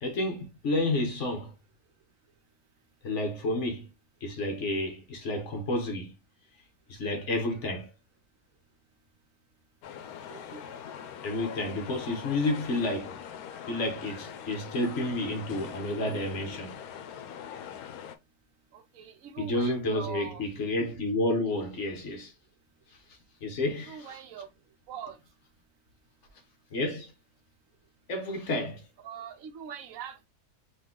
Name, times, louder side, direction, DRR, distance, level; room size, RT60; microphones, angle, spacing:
voice 1, 0.0-1.5 3.0-3.9 4.2-6.1 6.9-7.9 11.2-13.1 13.7-16.8 19.4-22.3 23.4-24.2 26.7-27.1 28.1-28.8, left 1 dB, 55° left, 1.4 m, -30 dB
sound 1, 9.8-18.2, left 8 dB, 85° left, 1.1 m, -42 dB
voice 2, 10.1-10.6 18.7-20.5 23.8-24.5 24.9-25.2 29.0-30.3, right 8 dB, 70° right, 1.2 m, -43 dB
4.1 x 2.7 x 3.7 m
omnidirectional pair, 1.5 m